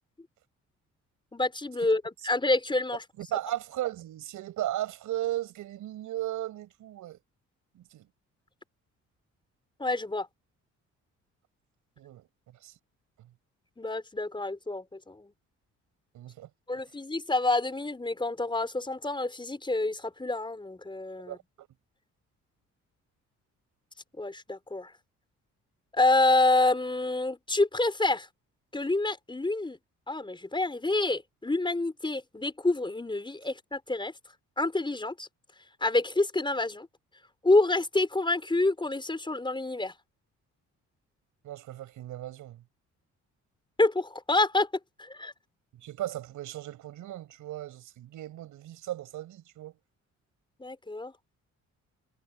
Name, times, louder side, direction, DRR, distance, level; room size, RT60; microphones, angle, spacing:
voice 1, 1.3-3.0 9.8-10.3 13.8-15.3 16.7-21.4 24.2-24.9 25.9-28.3 28.7-29.8 30.1-34.1 34.6-35.3 35.8-36.9 37.4-39.9 43.8-44.7 45.0-45.3 50.6-51.1, left 2 dB, 15° left, 4.6 m, -27 dB
voice 2, 3.2-7.2 7.7-8.1 12.0-12.3 12.6-12.7 16.1-16.5 21.3-21.7 41.4-42.6 45.8-49.8, right 14 dB, 80° right, 6.2 m, -36 dB
cardioid pair, 90°, 30 cm